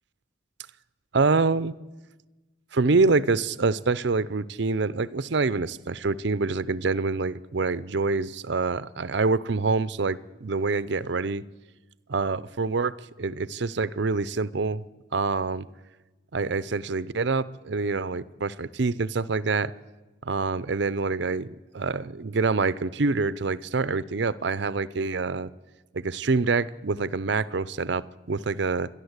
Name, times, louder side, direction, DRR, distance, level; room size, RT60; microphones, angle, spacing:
voice 1, 1.1-1.8 2.7-11.4 12.1-12.9 13.2-14.8 15.1-15.7 16.3-19.7 20.2-25.5 25.9-28.9, right 3 dB, 60° right, 17 dB, 0.6 m, -26 dB
28.0 x 11.5 x 8.1 m, 1.2 s
head